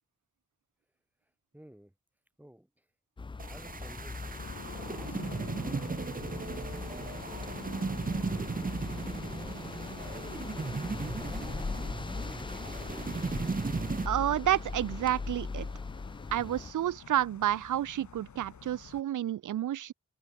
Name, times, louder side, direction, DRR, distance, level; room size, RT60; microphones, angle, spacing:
voice 1, 1.5-1.9 2.4-2.9 3.4-5.4 5.7-12.6, right 1 dB, 5° right, 4.6 m, -56 dB
sound 1, 3.2-16.7, left 4 dB, 15° left, 0.4 m, -40 dB
sound 2, 3.4-14.1, right 4 dB, 30° right, 0.9 m, -37 dB
sound 3, 4.4-19.0, left 6 dB, 75° left, 3.3 m, -49 dB
voice 2, 14.1-15.7 16.3-19.9, right 12 dB, 90° right, 0.5 m, -30 dB
open air
wide cardioid pair, 125°, 30 cm